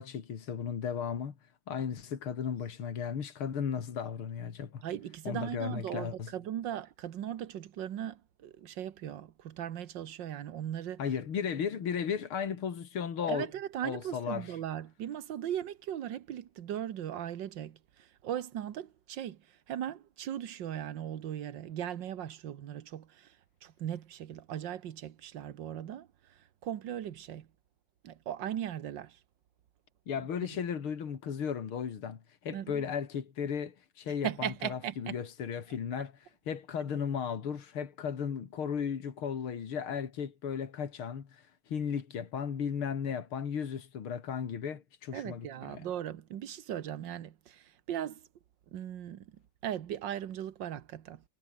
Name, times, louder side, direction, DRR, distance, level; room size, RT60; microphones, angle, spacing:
voice 1, 0.0-1.3 1.7-4.8 5.2-6.3 11.0-13.5 13.8-14.5 30.1-45.9, left 7 dB, 80° left, 3.0 m, -35 dB
voice 2, 4.8-11.0 13.3-19.4 19.7-23.4 23.6-26.1 26.6-27.5 28.0-29.2 32.5-32.8 34.2-35.2 45.1-48.3 48.7-49.3 49.6-51.2, right 10 dB, 65° right, 1.7 m, -38 dB
omnidirectional pair, 2.3 m